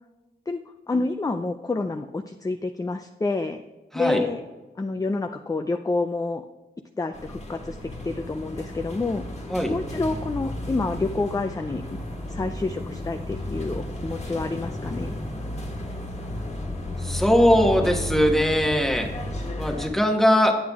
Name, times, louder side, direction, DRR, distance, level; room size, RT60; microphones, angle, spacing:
voice 1, 0.9-3.6 3.9-4.4 4.8-6.4 7.0-7.8 8.0-9.2 9.7-12.0 12.3-15.1, left 3 dB, 20° left, 6 dB, 0.4 m, -28 dB
sound 1, 7.1-19.9, left 1 dB, 40° left, 1.5 m, -33 dB
voice 2, 17.0-19.1 19.6-20.5, equal, ahead, 2 dB, 1.2 m, -20 dB
8.7 x 8.5 x 3.5 m, 1.2 s
wide cardioid pair, 110°, 17 cm